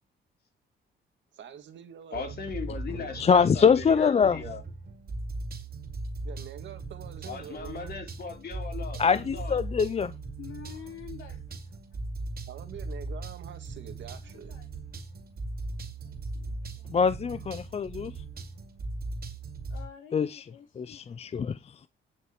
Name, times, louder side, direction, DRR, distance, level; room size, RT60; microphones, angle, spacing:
voice 1, 1.3-2.3 6.2-7.9 12.5-14.6, right 9 dB, 70° right, 2.0 m, -45 dB
voice 2, 2.1-4.6 7.3-9.6, left 5 dB, 50° left, 3.4 m, -38 dB
sound 1, 2.1-19.9, right 2 dB, 50° right, 2.6 m, -39 dB
voice 3, 3.0-4.4 9.0-10.1 16.9-18.1 20.1-20.4 20.8-21.6, left 6 dB, 30° left, 0.5 m, -24 dB
voice 4, 10.4-11.6 11.9-12.0 14.2-17.7 19.7-21.6, left 8 dB, 80° left, 3.8 m, -50 dB
17.0 x 6.5 x 3.0 m
cardioid pair, 90°, 20 cm